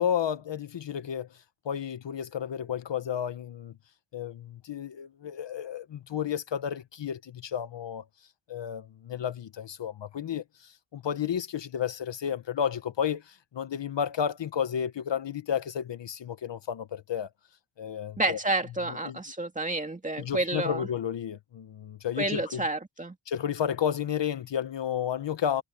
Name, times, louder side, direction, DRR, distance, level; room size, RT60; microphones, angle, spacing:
voice 1, 0.0-3.7 4.1-8.0 8.5-17.3 17.8-18.4 18.8-19.2 20.2-22.7 23.3-25.6, left 8 dB, 60° left, 1.1 m, -32 dB
voice 2, 18.2-20.9 22.2-23.1, right 2 dB, 15° right, 2.4 m, -30 dB
wide cardioid pair, 150°, 49 cm